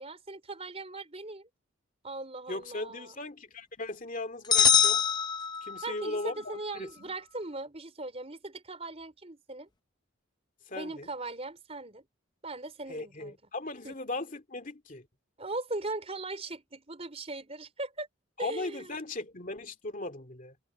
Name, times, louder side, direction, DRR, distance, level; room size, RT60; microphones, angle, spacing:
voice 1, 0.0-1.5 2.0-3.1 5.8-9.7 10.7-12.0 12.4-13.4 13.8-14.0 15.4-18.1 18.4-19.0, right 2 dB, 30° right, 4.4 m, -39 dB
voice 2, 2.5-5.0 5.6-7.1 10.7-11.1 12.9-15.1 18.4-20.5, left 2 dB, 40° left, 2.5 m, -38 dB
sound 1, 4.5-6.1, left 7 dB, 20° left, 0.6 m, -24 dB
head